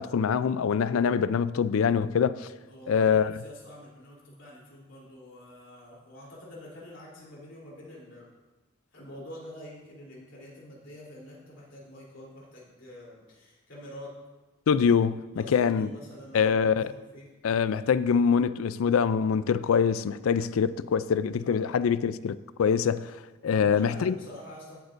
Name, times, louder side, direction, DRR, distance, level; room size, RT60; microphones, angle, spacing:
voice 1, 0.0-2.5 2.9-3.3 14.7-15.9 16.3-16.9 17.4-23.2 23.4-24.2, left 6 dB, 85° left, 0.4 m, -24 dB
voice 2, 2.7-8.3 8.9-14.1 15.3-17.3 21.4-21.7 23.4-24.8, equal, 65° left, 3.4 m, -46 dB
16.0 x 8.1 x 2.6 m
head